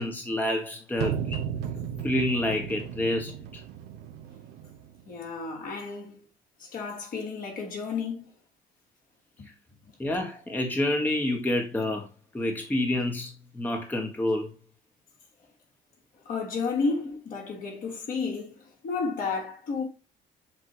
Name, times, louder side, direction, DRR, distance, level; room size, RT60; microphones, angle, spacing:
voice 1, 0.0-1.4 2.0-3.6 10.0-12.1 12.3-14.5, left 1 dB, 10° left, 1.2 m, -28 dB
sound 1, 1.0-5.0, right 8 dB, 80° right, 0.8 m, -35 dB
voice 2, 5.1-6.2 6.6-8.3 9.4-9.5 16.2-19.9, left 4 dB, 55° left, 2.6 m, -32 dB
7.3 x 2.7 x 4.7 m
cardioid pair, 110°, 17 cm